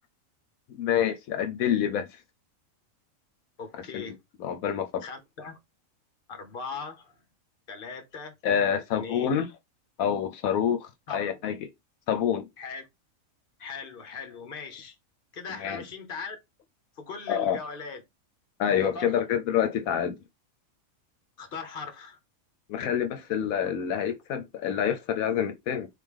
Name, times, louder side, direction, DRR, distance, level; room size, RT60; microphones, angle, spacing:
voice 1, 0.8-2.1 3.9-4.1 4.4-5.0 8.4-9.5 10.0-11.7 12.1-12.5 15.6-15.8 17.3-17.6 18.6-20.2 22.7-25.9, left 8 dB, 80° left, 1.1 m, -27 dB
voice 2, 3.6-4.2 5.0-5.6 6.3-7.2 7.7-8.3 9.0-9.3 11.1-11.5 12.6-12.8 13.6-15.0 15.3-16.4 17.0-18.0 18.8-19.2 21.4-22.2, left 5 dB, 40° left, 1.1 m, -39 dB
3.9 x 3.3 x 3.5 m
omnidirectional pair, 1.5 m